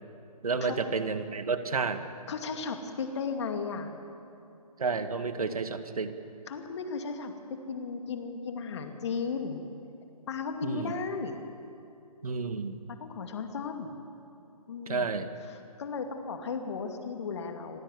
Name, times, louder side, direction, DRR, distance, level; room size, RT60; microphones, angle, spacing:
voice 1, 0.4-2.0 4.8-6.2 10.6-10.9 12.2-12.8 14.9-15.3, right 4 dB, 65° right, 9 dB, 1.9 m, -31 dB
voice 2, 2.3-3.9 6.5-7.3 7.7-9.6 10.3-11.4 13.0-14.0 14.7-15.1 15.5-17.8, left 5 dB, 45° left, 5 dB, 2.5 m, -35 dB
26.0 x 17.0 x 8.3 m, 2.6 s
figure-of-eight pair, 140°, 20 cm